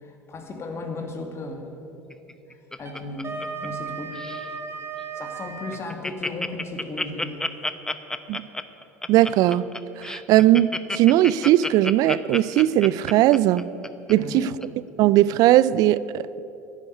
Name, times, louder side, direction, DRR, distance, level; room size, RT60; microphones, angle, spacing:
voice 1, 0.0-1.9 2.8-4.5 5.1-7.5 14.2-14.5, left 3 dB, 35° left, 2.3 m, -35 dB
Laughter, 2.1-3.9 4.1-4.5 5.0-5.1 5.3-5.4 5.7-14.1 14.6-14.7, left 2 dB, 10° left, 0.8 m, -31 dB
Wind instrument woodwind instrument, 2.8-5.9, right 5 dB, 35° right, 2.2 m, -35 dB
voice 2, 9.1-9.7 10.0-13.7 14.1-14.5 15.0-16.4, right 14 dB, 55° right, 0.5 m, -19 dB
11.5 x 10.0 x 9.6 m
figure-of-eight pair, 65°, 8 cm